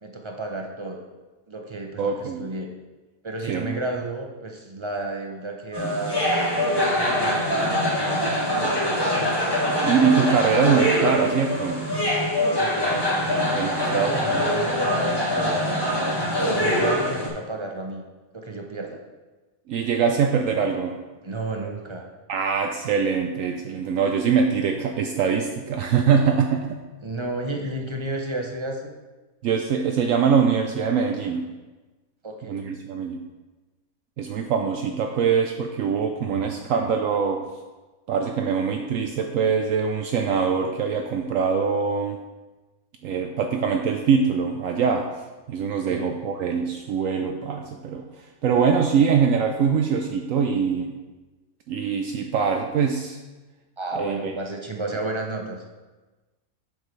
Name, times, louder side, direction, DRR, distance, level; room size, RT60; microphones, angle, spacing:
voice 1, 0.0-1.0 1.5-2.7 3.2-6.4 6.8-8.2 12.5-18.0 18.3-19.0 21.2-22.1 27.0-28.9 32.2-32.6 45.9-46.1 53.8-55.6, right 2 dB, 35° right, 2 dB, 0.5 m, -32 dB
voice 2, 2.0-2.4 3.5-3.7 9.6-11.9 13.5-14.5 19.7-21.0 22.3-26.8 29.4-31.5 32.5-33.2 34.2-37.4 38.1-42.2 43.0-45.1 45.5-48.0 48.4-50.9 51.7-53.2 54.0-54.3, right 6 dB, 70° right, 4 dB, 0.9 m, -23 dB
sound 1, 5.7-17.3, equal, 15° left, 1.6 m, -23 dB
8.1 x 6.6 x 3.2 m, 1.2 s
omnidirectional pair, 1.5 m